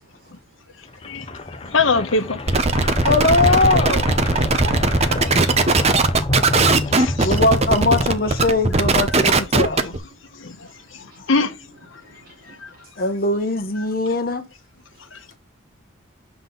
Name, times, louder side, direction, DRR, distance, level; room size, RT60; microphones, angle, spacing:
voice 1, 0.0-1.6 6.6-7.3 7.7-7.8 8.5-8.6 9.7-9.8 10.1-11.3 11.6-13.1 14.9-15.3, right 2 dB, 45° right, 3.7 m, -47 dB
sound 1, 0.9-8.9, left 1 dB, 30° left, 0.7 m, -27 dB
voice 2, 1.6-2.4 2.9-3.0 5.5-5.8 6.6-7.3 9.8-9.9 10.3-10.6 10.9-11.6 12.6-12.7 15.1-15.3, left 4 dB, 70° left, 1.0 m, -24 dB
sound 2, 2.5-10.0, right 3 dB, 30° right, 0.7 m, -18 dB
voice 3, 3.0-4.3 7.2-10.0 13.0-14.4, left 2 dB, 45° left, 1.0 m, -20 dB
7.4 x 5.9 x 3.9 m
head